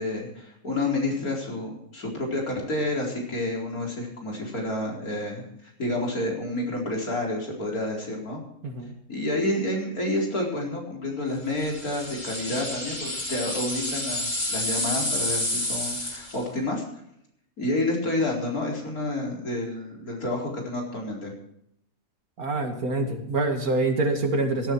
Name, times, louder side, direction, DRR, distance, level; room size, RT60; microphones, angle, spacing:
voice 1, 0.0-8.4 9.1-16.8 17.6-21.3, left 1 dB, 90° left, -1 dB, 4.7 m, -29 dB
sound 1, 11.6-16.4, left 1 dB, 30° left, 4.2 m, -29 dB
voice 2, 22.4-24.7, right 2 dB, 85° right, 4 dB, 2.8 m, -25 dB
17.0 x 13.0 x 4.5 m, 0.75 s
omnidirectional pair, 1.5 m